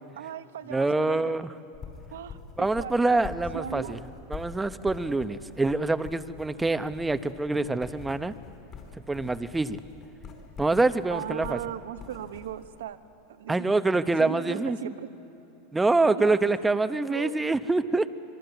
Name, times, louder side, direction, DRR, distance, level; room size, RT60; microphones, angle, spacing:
voice 1, 0.1-1.3 2.1-3.2 3.5-4.0 11.1-13.0 13.3-13.7 14.2-15.1 16.0-16.4 17.1-17.3, right 10 dB, 85° right, 10 dB, 1.2 m, -37 dB
voice 2, 0.7-1.5 2.6-4.0 4.3-8.3 9.1-9.8 10.6-11.6 13.5-14.8 15.7-18.2, right 3 dB, 10° right, 12 dB, 0.9 m, -25 dB
sound 1, 1.7-12.7, left 6 dB, 35° left, 5.1 m, -45 dB
25.5 x 22.5 x 8.1 m, 2.9 s
supercardioid pair, 115°, 0 cm